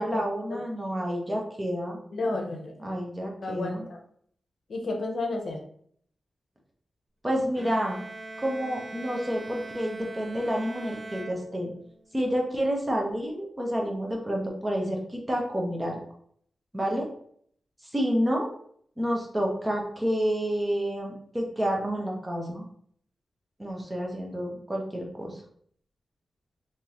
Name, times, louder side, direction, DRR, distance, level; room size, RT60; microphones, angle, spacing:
voice 1, 0.0-2.0 2.8-3.8 7.2-8.0 8.4-11.7 12.1-16.0 16.7-17.1 17.9-18.5 19.0-22.6 23.6-25.3, equal, 20° right, 0 dB, 0.9 m, -29 dB
voice 2, 2.1-2.8 3.4-4.0 4.7-5.6, left 2 dB, 65° left, 2 dB, 0.7 m, -31 dB
Bowed string instrument, 7.6-12.0, right 2 dB, 40° right, 0.5 m, -41 dB
3.5 x 2.7 x 2.9 m, 0.63 s
cardioid pair, 80°, 0 cm